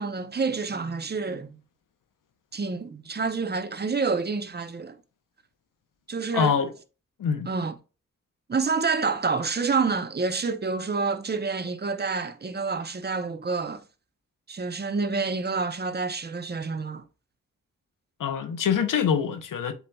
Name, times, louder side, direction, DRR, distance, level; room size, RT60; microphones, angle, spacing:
voice 1, 0.0-1.6 2.5-5.0 6.1-6.6 7.5-7.8 8.5-13.8 14.5-17.0, right 4 dB, 30° right, 0.7 m, -28 dB
voice 2, 6.3-6.7 7.2-7.5 18.2-19.7, left 7 dB, 90° left, 0.7 m, -24 dB
7.9 x 2.9 x 2.3 m
cardioid pair, 60°, 31 cm